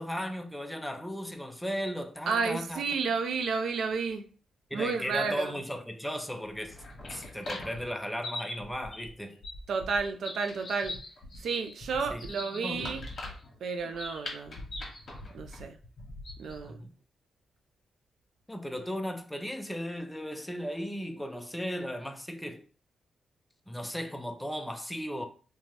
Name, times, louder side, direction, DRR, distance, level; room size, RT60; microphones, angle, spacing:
voice 1, 0.0-2.8 4.7-6.8 7.1-9.4 12.1-12.2 12.6-13.0 16.6-16.9 18.5-22.6 23.7-25.2, equal, 5° left, 0.5 m, -36 dB
voice 2, 2.3-4.2 4.7-5.5 9.7-11.0 11.4-13.0 13.6-14.5 15.3-15.8 16.4-16.8, right 5 dB, 75° right, 0.4 m, -31 dB
sound 1, 6.4-16.7, left 2 dB, 55° left, 1.0 m, -42 dB
2.6 x 2.2 x 3.1 m
cardioid pair, 85°, 0 cm